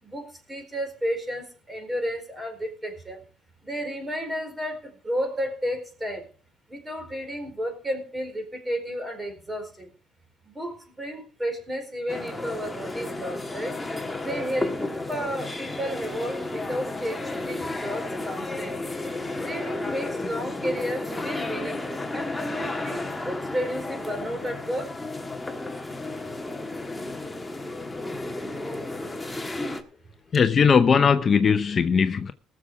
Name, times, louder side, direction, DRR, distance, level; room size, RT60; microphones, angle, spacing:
voice 1, 0.0-3.2 3.6-6.3 6.7-9.9 10.4-13.8 14.2-14.8 15.1-18.9 19.4-24.9, equal, 15° right, 4.2 m, -32 dB
sound 1, 12.1-29.8, left 2 dB, 10° left, 1.5 m, -33 dB
voice 2, 30.3-32.3, left 6 dB, 35° left, 0.7 m, -19 dB
19.0 x 7.0 x 4.8 m
cardioid pair, 125°, 0 cm